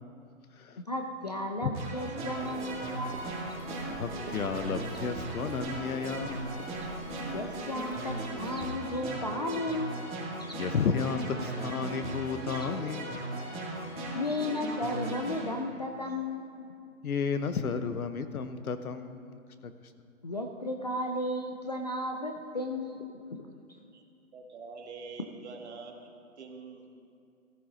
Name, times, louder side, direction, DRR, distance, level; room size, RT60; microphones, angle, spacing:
voice 1, 0.9-3.3 7.3-10.0 10.4-10.6 12.5-12.7 14.1-16.7 20.2-23.5, left 1 dB, 30° left, 4 dB, 0.4 m, -34 dB
sound 1, 1.7-15.5, right 2 dB, 15° right, 2.5 m, -38 dB
Walk footsteps, 2.3-8.7, right 4 dB, 70° right, 1.5 m, -47 dB
voice 2, 3.9-6.5 10.6-13.2 17.0-19.4, left 5 dB, 85° left, 10 dB, 1.1 m, -32 dB
voice 3, 24.3-26.9, right 4 dB, 50° right, 2 dB, 1.9 m, -45 dB
15.0 x 13.5 x 3.9 m, 2.4 s
hypercardioid pair, 160°, 42 cm